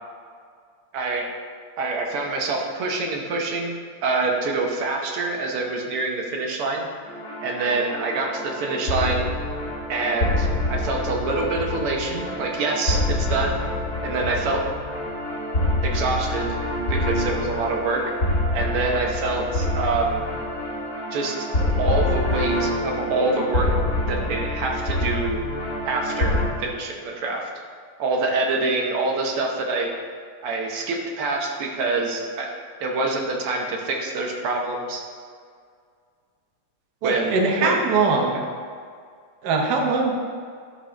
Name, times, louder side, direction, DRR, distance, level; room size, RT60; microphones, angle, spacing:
voice 1, 0.9-1.3 1.8-6.8 7.4-9.3 9.9-13.6 14.0-14.6 15.8-16.6 16.9-18.0 18.5-20.2 21.1-21.5 21.8-23.7 24.1-25.4 25.9-27.4 28.0-29.9 30.4-32.5 32.8-35.0 37.0-37.8, right 3 dB, 85° right, 1 dB, 1.9 m, -26 dB
sound 1, 7.1-26.5, left 1 dB, 45° left, 2.6 m, -26 dB
voice 2, 37.0-38.4 39.4-40.1, right 3 dB, 55° right, 1 dB, 1.4 m, -21 dB
11.0 x 5.2 x 3.8 m, 2.1 s
omnidirectional pair, 2.4 m